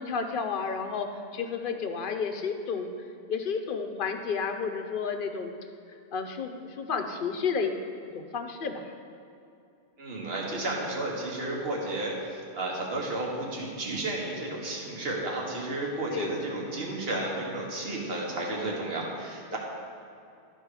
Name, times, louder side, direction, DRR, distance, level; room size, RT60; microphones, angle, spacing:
voice 1, 0.0-2.9 3.3-5.5 6.1-7.7 8.1-8.9 16.1-16.4, left 5 dB, 60° left, 6 dB, 0.7 m, -31 dB
voice 2, 10.0-19.6, right 2 dB, 70° right, -2 dB, 1.6 m, -32 dB
11.5 x 4.5 x 4.7 m, 2.6 s
omnidirectional pair, 1.1 m